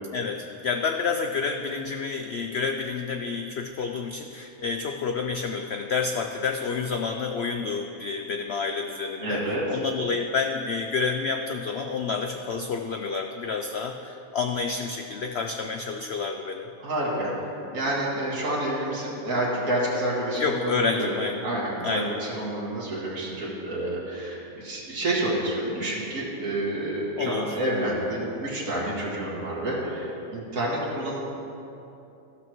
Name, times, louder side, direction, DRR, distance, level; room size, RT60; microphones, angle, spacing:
voice 1, 0.1-16.6 20.4-21.4 21.8-22.2 27.2-27.6, left 5 dB, 70° left, 5 dB, 0.6 m, -29 dB
voice 2, 9.2-9.6 16.8-17.5 17.7-21.1 21.4-31.2, right 1 dB, 60° right, -6 dB, 2.4 m, -29 dB
14.0 x 12.0 x 3.1 m, 2.8 s
omnidirectional pair, 1.7 m